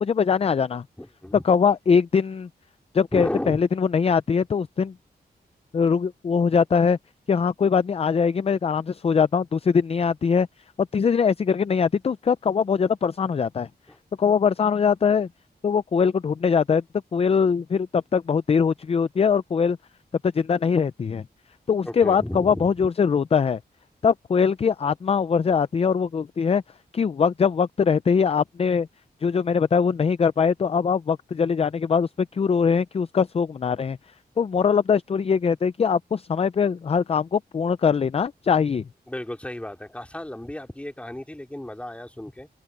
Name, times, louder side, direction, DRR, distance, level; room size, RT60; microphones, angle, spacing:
voice 1, 0.0-0.8 1.4-2.5 2.9-4.9 5.7-7.0 7.3-10.5 10.9-13.7 14.2-15.3 15.6-16.8 17.1-19.8 20.2-21.2 21.7-23.6 24.0-26.6 26.9-28.9 29.2-34.0 34.4-38.8, left 6 dB, 35° left, 0.4 m, -22 dB
voice 2, 1.0-1.4 3.1-3.6 13.9-14.0 21.9-22.9 39.1-42.5, left 1 dB, 5° left, 2.5 m, -33 dB
wide cardioid pair, 165°, 17 cm